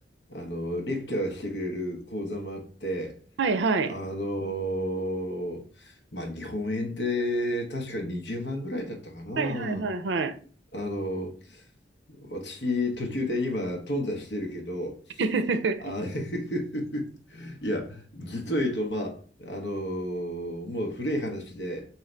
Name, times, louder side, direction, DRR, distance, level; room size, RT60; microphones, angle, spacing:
voice 1, 0.3-3.1 3.9-9.9 10.7-11.6 12.1-15.2 15.8-21.9, left 1 dB, 70° left, 1.0 m, -31 dB
voice 2, 3.4-3.9 9.4-10.3 15.2-15.9, right 4 dB, 85° right, 0.5 m, -26 dB
3.8 x 2.9 x 3.2 m
head